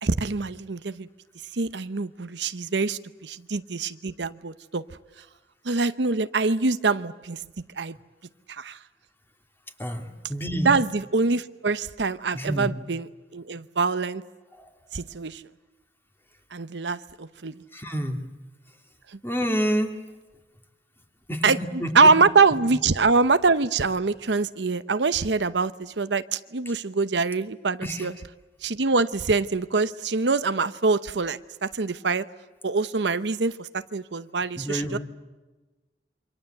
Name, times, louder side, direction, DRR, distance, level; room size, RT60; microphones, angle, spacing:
voice 1, 0.0-1.1 1.5-4.8 5.6-7.4 7.8-8.0 8.5-8.8 10.6-14.2 14.9-15.4 16.5-17.6 19.1-19.2 21.4-28.2 28.6-32.2 32.6-35.0, right 4 dB, 70° right, 12 dB, 0.8 m, -24 dB
voice 2, 9.8-10.7 12.3-12.7 14.6-14.7 17.7-18.2 19.2-20.0 21.3-22.1 27.8-28.1 34.5-35.0, equal, 10° left, 4 dB, 2.7 m, -28 dB
28.5 x 25.5 x 7.9 m, 1.2 s
head